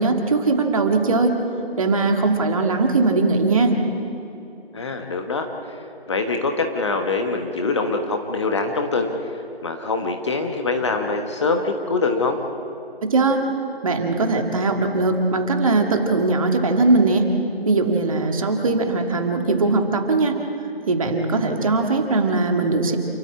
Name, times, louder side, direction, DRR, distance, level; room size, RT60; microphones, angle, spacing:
voice 1, 0.0-1.4 1.8-3.8 13.1-13.4 13.8-17.3 17.7-20.4 20.9-23.0, right 3 dB, 35° right, 4 dB, 2.0 m, -20 dB
voice 2, 4.7-9.1 9.6-12.4, left 3 dB, 30° left, 4 dB, 1.3 m, -24 dB
28.5 x 13.0 x 8.8 m, 2.6 s
figure-of-eight pair, 150°, 31 cm